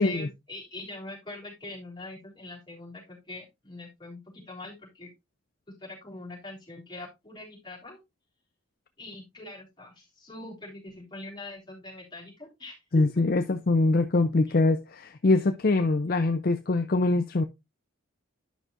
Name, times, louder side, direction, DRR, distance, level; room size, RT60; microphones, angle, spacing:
voice 1, 0.0-5.1 5.8-8.0 9.0-13.2 14.5-14.6 16.1-16.2, left 2 dB, 20° left, 3.6 m, -43 dB
voice 2, 12.9-17.4, left 2 dB, 45° left, 0.5 m, -23 dB
11.0 x 5.9 x 2.6 m
head